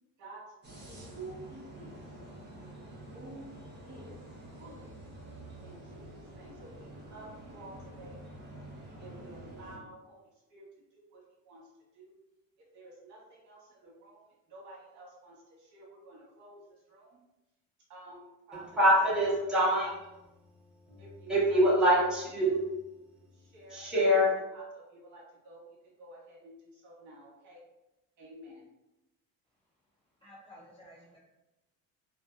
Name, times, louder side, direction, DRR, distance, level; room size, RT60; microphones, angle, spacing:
sound 1, 0.6-9.8, right 1 dB, 30° right, 0.9 m, -48 dB
voice 1, 0.7-1.9 3.1-4.2 4.6-4.9 5.6-8.2 9.0-10.2 10.5-10.6 10.9-12.1 12.7-17.2 17.9-18.6 19.2-19.3 21.0-21.6 23.3-25.6 26.0-27.6 28.2-28.7, right 2 dB, 55° right, 1.2 m, -51 dB
voice 2, 18.5-20.2 20.9-21.0 21.3-22.8 23.7-24.3, equal, ahead, 1.1 m, -25 dB
voice 3, 30.2-31.2, equal, 15° left, 0.3 m, -53 dB
2.6 x 2.5 x 2.4 m
cardioid pair, 130°, 36 cm